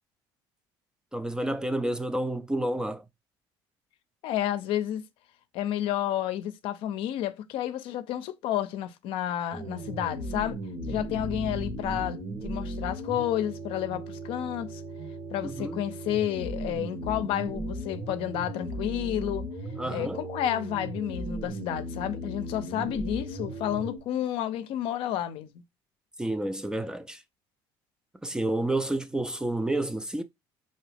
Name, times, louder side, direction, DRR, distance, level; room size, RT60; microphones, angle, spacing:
voice 1, 1.1-3.0 15.4-15.8 19.8-20.2 26.2-27.2 28.2-30.2, right 1 dB, 10° right, 0.3 m, -30 dB
voice 2, 4.2-5.0 5.5-10.6 10.9-14.8 15.3-19.5 19.9-25.6, left 11 dB, 70° left, 0.5 m, -31 dB
sound 1, 9.5-24.0, right 1 dB, 60° right, 1.2 m, -36 dB
3.9 x 2.7 x 3.3 m
cardioid pair, 110°, 9 cm